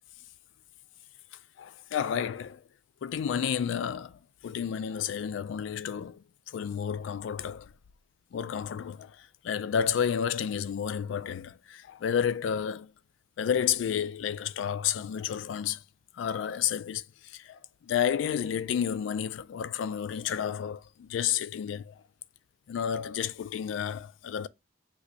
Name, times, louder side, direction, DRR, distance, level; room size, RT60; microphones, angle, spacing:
voice 1, 1.6-2.6 3.0-7.7 8.3-12.9 13.4-15.8 16.1-21.9 22.7-24.5, left 8 dB, 80° left, 0.3 m, -31 dB
6.1 x 3.0 x 2.7 m
head